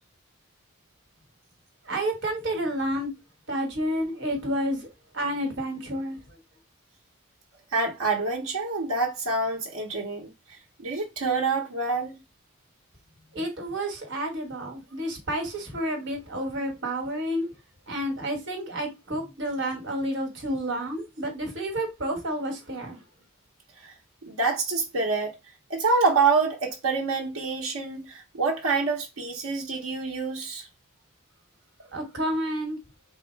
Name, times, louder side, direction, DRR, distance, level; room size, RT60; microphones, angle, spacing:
voice 1, 1.8-3.1 3.5-6.4 13.3-17.5 17.9-23.0 31.9-32.8, right 1 dB, 60° right, 1.3 m, -30 dB
voice 2, 7.7-10.3 10.8-12.2 23.8-23.9 24.3-25.4 25.7-30.7, right 4 dB, 85° right, 0.8 m, -26 dB
3.6 x 2.1 x 4.4 m
head